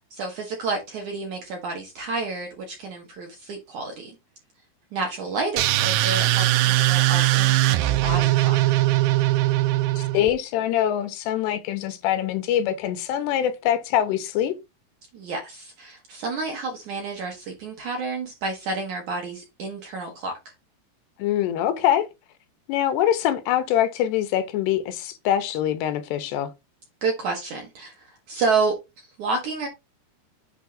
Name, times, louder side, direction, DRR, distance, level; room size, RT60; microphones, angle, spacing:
voice 1, 0.1-4.2 4.9-8.8 15.1-20.3 27.0-29.7, right 3 dB, 65° right, 1.9 m, -30 dB
sound 1, 5.6-10.3, right 16 dB, 85° right, 2.1 m, -20 dB
voice 2, 10.0-14.5 21.2-22.1 22.7-26.5, left 11 dB, 85° left, 2.8 m, -24 dB
8.1 x 2.7 x 5.1 m
omnidirectional pair, 4.8 m